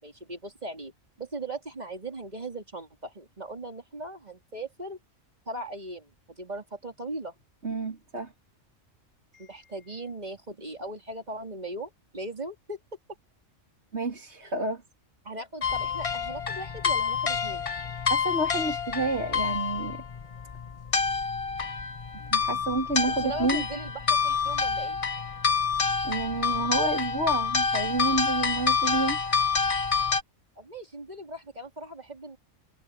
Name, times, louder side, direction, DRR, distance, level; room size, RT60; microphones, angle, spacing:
voice 1, 0.0-0.9 1.2-5.0 5.5-7.3 9.4-12.8 14.4-14.5 15.2-17.7 23.1-25.1 30.6-32.4, right 2 dB, 35° right, 3.2 m, -39 dB
voice 2, 7.6-8.3 9.3-9.7 13.9-14.8 18.1-20.0 22.3-23.6 26.0-29.4, right 2 dB, 55° right, 3.9 m, -30 dB
sound 1, 15.6-30.2, left 5 dB, 35° left, 0.7 m, -28 dB
omnidirectional pair, 1.3 m